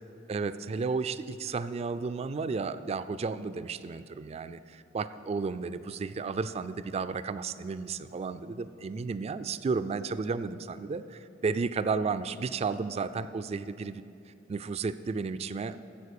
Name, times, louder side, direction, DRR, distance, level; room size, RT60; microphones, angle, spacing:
voice 1, 0.3-14.0 14.5-15.8, right 4 dB, 35° right, 13 dB, 0.3 m, -33 dB
15.0 x 5.1 x 6.5 m, 2.7 s
head